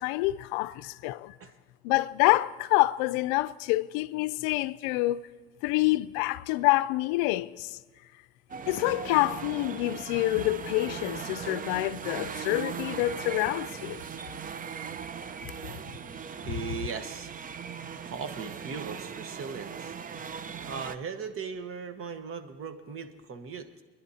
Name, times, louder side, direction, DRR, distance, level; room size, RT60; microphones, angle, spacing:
voice 1, 0.0-1.3 1.8-5.3 5.6-7.8 8.7-14.0, left 18 dB, 70° left, 0.5 m, -27 dB
sound 1, 8.5-21.0, right 7 dB, 30° right, 0.6 m, -39 dB
voice 2, 16.4-17.3 18.0-19.9 20.6-23.8, right 6 dB, 45° right, 1.3 m, -38 dB
28.5 x 10.5 x 2.8 m
hypercardioid pair, 80°, 30 cm